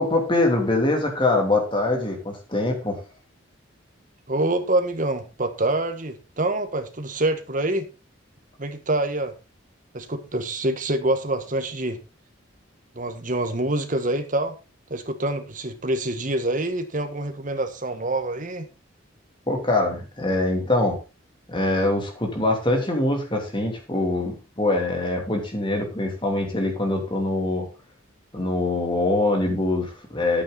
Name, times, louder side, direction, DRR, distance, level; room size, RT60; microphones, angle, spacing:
voice 1, 0.0-3.0 19.5-21.0 21.5-27.7 28.3-30.4, left 2 dB, 25° left, 3.0 m, -23 dB
voice 2, 4.3-7.9 8.6-9.3 9.9-12.0 12.9-14.6 14.9-18.7, right 1 dB, 40° right, 1.5 m, -26 dB
10.5 x 8.9 x 4.1 m
head